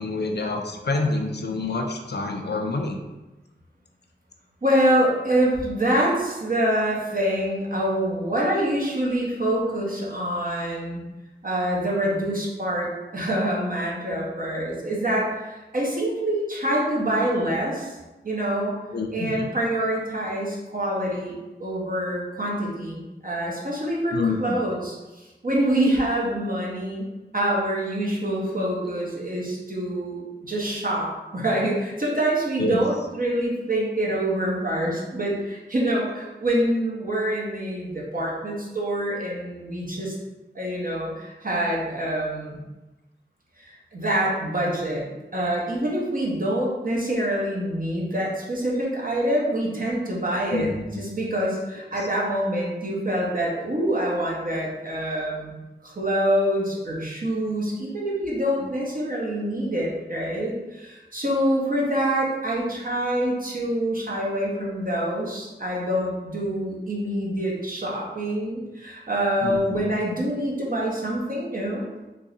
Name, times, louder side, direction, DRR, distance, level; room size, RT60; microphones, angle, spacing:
voice 1, 0.0-3.0 18.9-19.5 24.1-24.6 32.6-32.8 50.5-51.1 69.4-69.9, left 3 dB, 60° left, 4 dB, 0.4 m, -27 dB
voice 2, 4.6-11.0 11.4-18.0 18.2-18.8 19.1-27.0 27.3-40.1 40.5-42.6 43.6-50.7 51.0-55.5 55.8-71.9, right 1 dB, 45° right, -4 dB, 0.9 m, -26 dB
3.6 x 2.9 x 2.6 m, 1.1 s
wide cardioid pair, 65°, 19 cm